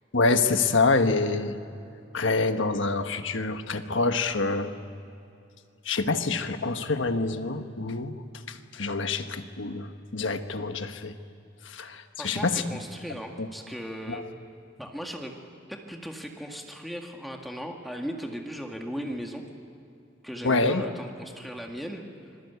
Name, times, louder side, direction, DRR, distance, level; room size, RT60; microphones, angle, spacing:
voice 1, 0.1-1.6 2.1-4.7 5.8-8.1 8.5-11.1 11.6-12.6 13.4-13.5 14.1-14.2 20.4-20.8, left 3 dB, 80° left, 7 dB, 1.4 m, -26 dB
voice 2, 12.2-14.2 14.8-15.3 15.7-19.4 20.2-22.0, equal, ahead, 1 dB, 2.0 m, -37 dB
26.0 x 21.5 x 8.3 m, 2.6 s
head